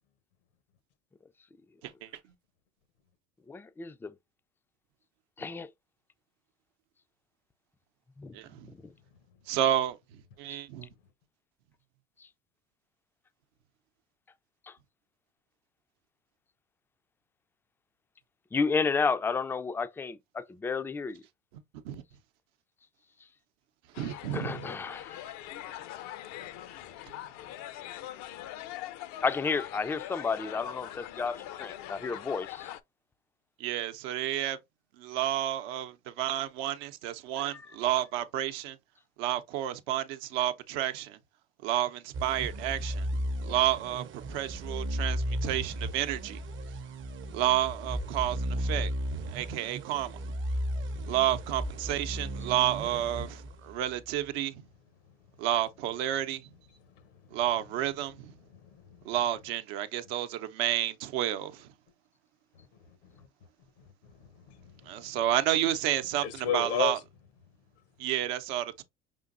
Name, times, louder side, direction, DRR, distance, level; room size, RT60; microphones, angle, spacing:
voice 1, 3.5-4.1 5.4-5.7 8.2-8.3 10.5-10.6 18.5-21.2 24.3-25.2 29.2-32.7, left 5 dB, 5° left, 0.3 m, -31 dB
voice 2, 8.3-8.7 9.5-10.0 10.4-10.9 21.8-22.0 24.0-24.7 33.6-34.6 35.0-38.8 39.2-41.2 41.6-43.1 43.4-46.4 47.3-48.9 49.3-50.3 51.0-54.6 55.4-56.4 57.3-58.3 59.1-61.7 64.9-67.0 68.0-68.8, right 12 dB, 70° right, 0.7 m, -30 dB
sound 1, 23.9-32.8, left 12 dB, 60° left, 0.6 m, -42 dB
sound 2, 42.1-54.0, right 1 dB, 40° right, 0.6 m, -35 dB
voice 3, 58.4-59.1 63.2-63.3 63.8-63.9 64.2-65.1 66.2-66.9, left 10 dB, 80° left, 1.0 m, -34 dB
5.1 x 3.7 x 2.4 m
hypercardioid pair, 75°, 32 cm